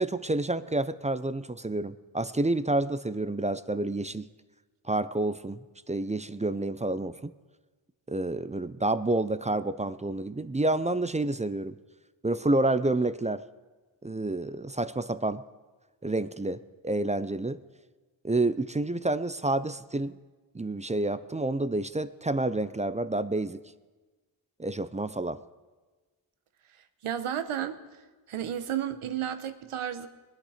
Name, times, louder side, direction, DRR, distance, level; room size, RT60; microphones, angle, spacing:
voice 1, 0.0-4.3 4.9-5.6 5.9-7.3 8.1-11.8 12.2-13.4 14.0-15.4 16.0-17.6 18.2-20.1 20.5-23.6 24.6-25.4, right 2 dB, 15° right, 14 dB, 0.4 m, -29 dB
voice 2, 27.0-27.8 28.3-30.1, right 10 dB, 85° right, 11 dB, 1.1 m, -32 dB
21.5 x 9.1 x 5.0 m, 1.3 s
cardioid pair, 75°, 49 cm